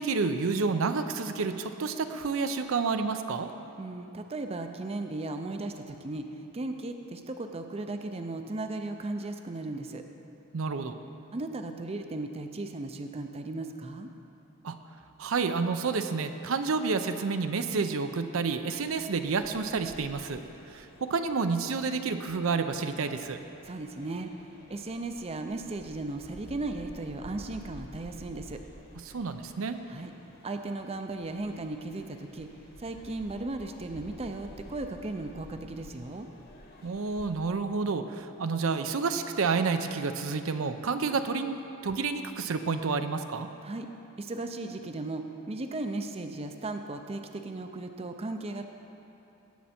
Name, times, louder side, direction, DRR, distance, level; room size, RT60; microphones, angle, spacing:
voice 1, 0.0-3.5 10.5-11.0 14.6-14.8 15.2-20.4 20.7-23.4 29.1-29.8 36.8-41.6 41.8-43.5, right 4 dB, 70° right, 8 dB, 0.6 m, -29 dB
voice 2, 3.8-10.0 11.3-14.1 23.6-28.6 29.9-30.1 30.4-32.5 32.8-36.3 43.6-43.9 44.2-48.7, right 2 dB, 30° right, 6 dB, 0.5 m, -36 dB
sound 1, 18.7-37.4, equal, 50° left, 1.5 m, -52 dB
17.0 x 7.4 x 4.3 m, 2.9 s
head